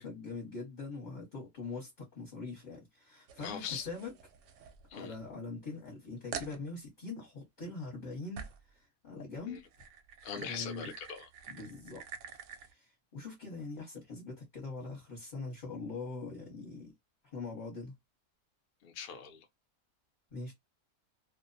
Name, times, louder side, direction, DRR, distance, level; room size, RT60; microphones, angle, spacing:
voice 1, 0.0-4.1 4.9-8.4 8.7-9.6 10.4-10.9 11.5-12.0 12.5-16.9 17.3-17.9 20.3-20.5, left 3 dB, 35° left, 0.9 m, -43 dB
sound 1, 3.3-5.3 5.8-5.9 6.3-6.6 8.4-8.7 9.5-12.7, right 7 dB, 70° right, 0.8 m, -47 dB
voice 2, 3.4-3.9 4.9-5.2 9.5-9.6 10.2-11.3 18.8-19.5, left 7 dB, 70° left, 0.5 m, -41 dB
2.3 x 2.1 x 2.5 m
omnidirectional pair, 1.5 m